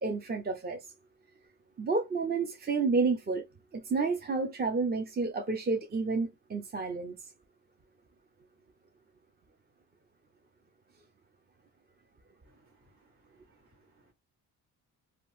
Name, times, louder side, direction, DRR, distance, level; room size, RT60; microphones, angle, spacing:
voice 1, 0.0-0.8 1.8-3.5 3.8-7.1, right 4 dB, 25° right, 0.6 m, -30 dB
voice 2, 12.5-14.1, right 1 dB, 50° right, 1.8 m, -67 dB
2.8 x 2.0 x 3.2 m
cardioid pair, 85°, 37 cm